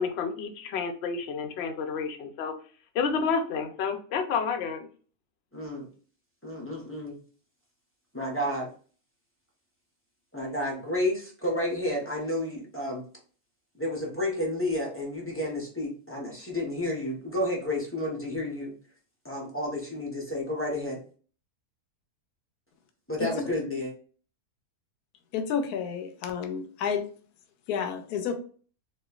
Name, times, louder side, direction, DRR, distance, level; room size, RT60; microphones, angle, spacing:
voice 1, 0.0-2.5 2.9-4.9, left 5 dB, 60° left, 5 dB, 0.7 m, -30 dB
voice 2, 5.5-5.9 6.4-7.2 8.1-8.7 10.3-13.0 13.7-18.7 19.2-21.0 23.1-23.9, left 1 dB, 15° left, -2 dB, 0.5 m, -31 dB
voice 3, 25.3-27.1 27.7-28.4, left 7 dB, 80° left, 6 dB, 1.1 m, -30 dB
4.3 x 2.4 x 2.4 m, 0.41 s
omnidirectional pair, 1.6 m